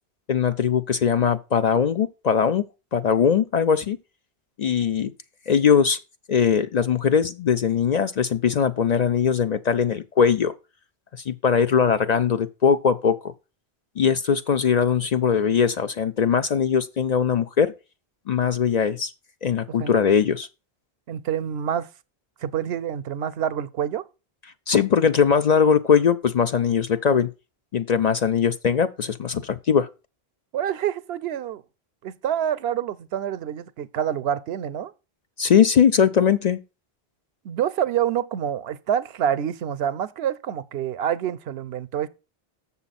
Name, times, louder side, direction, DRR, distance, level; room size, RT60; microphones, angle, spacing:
voice 1, 0.3-2.6 2.9-4.0 4.6-5.1 5.5-6.0 6.3-10.5 11.3-13.3 14.0-17.7 18.3-19.1 19.4-20.5 24.7-27.3 27.7-29.9 35.4-36.6, left 7 dB, 50° left, 0.5 m, -20 dB
voice 2, 21.1-21.9 22.4-24.0 30.5-31.6 32.0-34.9 37.4-42.1, right 9 dB, 80° right, 0.8 m, -27 dB
7.2 x 6.9 x 4.1 m
omnidirectional pair, 1.0 m